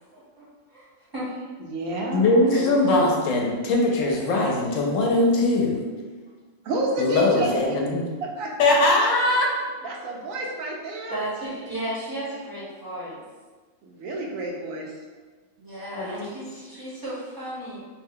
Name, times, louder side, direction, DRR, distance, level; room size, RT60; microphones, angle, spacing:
voice 1, 0.1-0.9 1.1-1.3 1.9-2.0 2.5-2.8 11.1-13.2 15.6-17.8, right 1 dB, 20° right, -9 dB, 0.7 m, -34 dB
voice 2, 1.6-2.3 6.6-7.7 8.2-9.4 9.8-11.2 13.8-14.9, right 1 dB, 80° right, 0 dB, 1.0 m, -29 dB
voice 3, 2.1-5.9 7.0-8.0 8.6-9.5 15.9-16.3, left 2 dB, 75° left, -1 dB, 0.9 m, -21 dB
2.6 x 2.1 x 3.6 m, 1.4 s
omnidirectional pair, 1.4 m